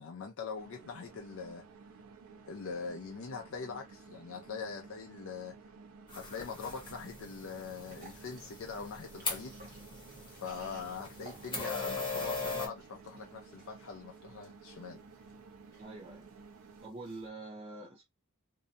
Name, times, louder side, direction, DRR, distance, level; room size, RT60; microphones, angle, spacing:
voice 1, 0.0-1.6 2.5-5.6 6.1-9.6 10.3-15.0, left 5 dB, 70° left, 0.5 m, -42 dB
sound 1, 0.5-16.9, right 4 dB, 80° right, 0.4 m, -54 dB
sound 2, 6.1-12.7, left 3 dB, 25° left, 0.9 m, -40 dB
sound 3, 7.8-17.3, right 2 dB, 45° right, 1.4 m, -58 dB
voice 2, 15.8-16.3 16.8-18.0, right 2 dB, 30° right, 0.5 m, -45 dB
2.6 x 2.2 x 2.6 m
head